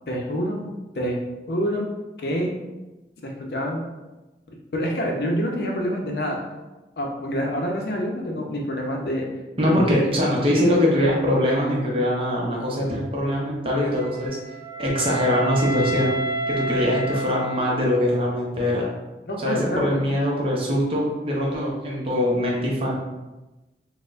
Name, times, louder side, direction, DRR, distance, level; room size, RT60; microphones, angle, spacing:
voice 1, 0.1-0.6 1.0-1.2 1.5-1.9 2.2-2.5 3.2-3.9 4.7-6.4 7.0-9.3 9.6-9.8 19.3-19.9, equal, 65° left, 0 dB, 0.5 m, -26 dB
voice 2, 9.6-14.4 14.8-16.2 16.5-18.9 19.4-22.9, equal, 30° right, -3 dB, 0.6 m, -22 dB
Wind instrument woodwind instrument, 13.9-18.1, right 1 dB, 15° left, 0.8 m, -30 dB
4.2 x 2.1 x 2.4 m, 1.1 s
head